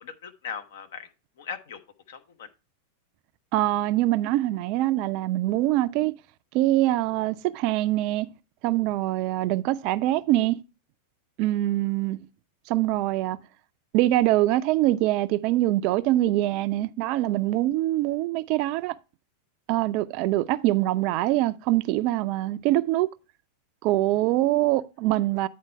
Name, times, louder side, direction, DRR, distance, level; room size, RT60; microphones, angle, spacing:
voice 1, 0.0-1.1 1.4-1.8 2.1-2.5 24.7-24.8, left 6 dB, 60° left, 0.8 m, -39 dB
voice 2, 3.5-6.1 6.5-8.3 8.6-10.6 11.4-12.2 12.7-13.4 13.9-18.9 19.7-23.1 23.8-25.5, right 16 dB, 45° right, 0.4 m, -24 dB
9.4 x 4.4 x 4.6 m
figure-of-eight pair, 90°, 0 cm